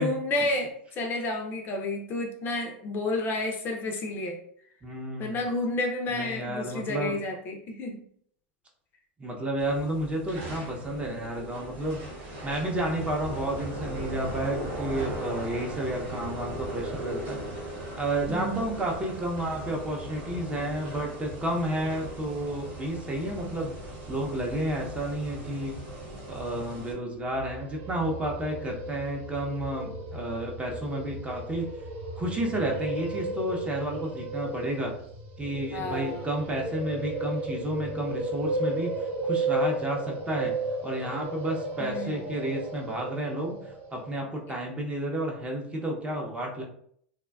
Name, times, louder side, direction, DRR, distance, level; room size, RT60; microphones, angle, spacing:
voice 1, 0.0-4.4 5.2-8.0 18.3-18.6 35.7-36.3 41.8-42.2 44.5-44.6, left 2 dB, 35° left, 3 dB, 0.4 m, -31 dB
voice 2, 4.8-5.4 6.1-7.2 9.2-12.0 12.4-17.4 18.0-23.7 24.1-25.8 26.3-31.7 32.2-34.9 35.4-40.5 40.8-46.6, right 1 dB, 20° right, 0 dB, 0.6 m, -31 dB
sound 1, 9.6-26.9, right 1 dB, 70° right, 1.3 m, -38 dB
sound 2, 27.2-44.2, right 2 dB, 55° right, 0.6 m, -34 dB
2.6 x 2.1 x 2.3 m, 0.64 s
hypercardioid pair, 105°, 6 cm